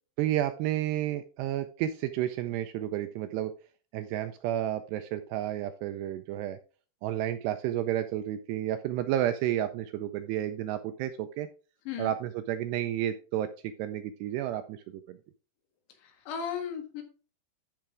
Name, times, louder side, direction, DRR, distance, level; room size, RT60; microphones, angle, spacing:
voice 1, 0.2-3.5 3.9-6.6 7.0-11.5 12.0-15.2, right 12 dB, 80° right, 9 dB, 2.4 m, -31 dB
voice 2, 16.3-17.0, left 8 dB, 75° left, 5 dB, 3.8 m, -35 dB
12.0 x 5.8 x 3.6 m, 0.37 s
omnidirectional pair, 5.3 m